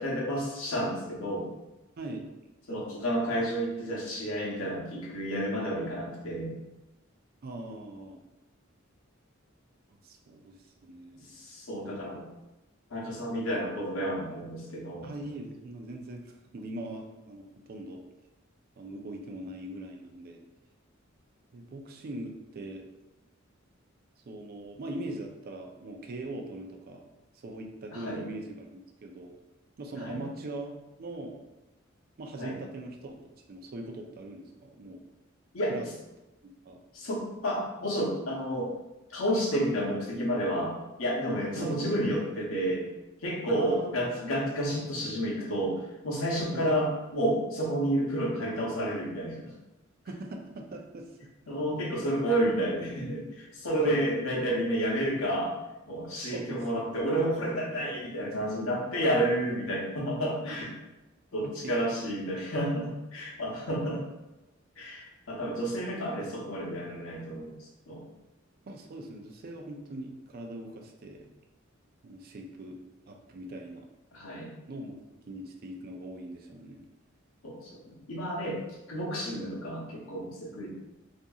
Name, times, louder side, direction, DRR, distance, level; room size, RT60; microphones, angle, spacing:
voice 1, 0.0-1.5 2.7-6.6 11.3-12.2 12.9-15.1 27.9-28.2 29.9-30.2 32.4-32.6 35.5-35.7 36.9-38.7 39.1-42.9 43.2-49.5 51.5-55.5 55.9-60.7 61.3-64.0 64.8-68.0 74.1-74.5 77.4-78.6 78.9-80.7, equal, 90° left, -2 dB, 0.7 m, -30 dB
voice 2, 2.0-2.3 7.4-8.2 10.0-10.6 10.8-11.3 15.0-18.0 18.8-20.4 21.5-22.9 24.3-27.0 27.4-29.3 29.8-31.4 32.2-33.2 33.5-35.0 35.7-35.9 36.7-36.8 41.6-41.8 43.5-44.1 44.6-44.8 46.5-46.7 50.1-51.1 51.7-51.8 53.8-54.0 56.3-56.9 61.4-61.7 68.6-71.2 72.0-72.8 73.1-73.9 74.7-75.0 75.2-76.8, right 1 dB, 50° right, 2 dB, 0.4 m, -41 dB
2.7 x 2.5 x 2.3 m, 1.0 s
head